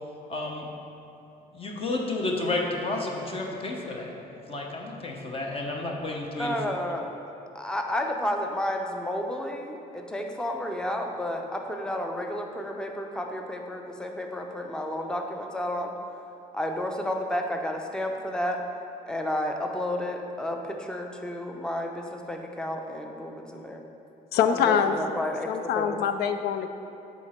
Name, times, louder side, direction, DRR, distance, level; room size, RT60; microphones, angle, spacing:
voice 1, 0.3-0.7 1.5-4.1 4.5-6.6, left 2 dB, 35° left, 0 dB, 0.8 m, -31 dB
voice 2, 6.4-7.0 7.5-15.9 16.5-18.6 19.1-23.8 24.5-25.5 25.7-26.0, left 1 dB, 5° left, 3 dB, 0.5 m, -31 dB
voice 3, 24.3-25.0 25.5-26.7, left 8 dB, 70° left, 8 dB, 0.4 m, -24 dB
7.0 x 4.1 x 4.3 m, 2.8 s
cardioid pair, 110°, 17 cm